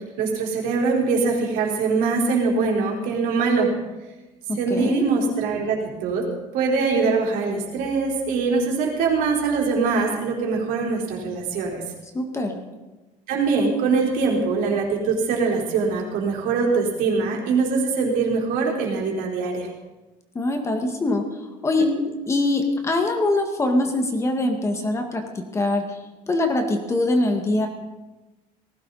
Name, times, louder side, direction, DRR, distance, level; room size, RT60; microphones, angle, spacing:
voice 1, 0.2-3.7 4.6-6.3 6.5-11.8 13.3-19.7 21.8-21.9, right 4 dB, 80° right, -2 dB, 4.4 m, -23 dB
voice 2, 4.5-5.1 12.1-12.6 20.4-21.3 21.6-21.9 22.3-25.2 25.5-26.0 26.3-27.7, left 2 dB, 20° left, 4 dB, 1.8 m, -23 dB
19.0 x 16.0 x 4.2 m, 1.1 s
cardioid pair, 155°, 14 cm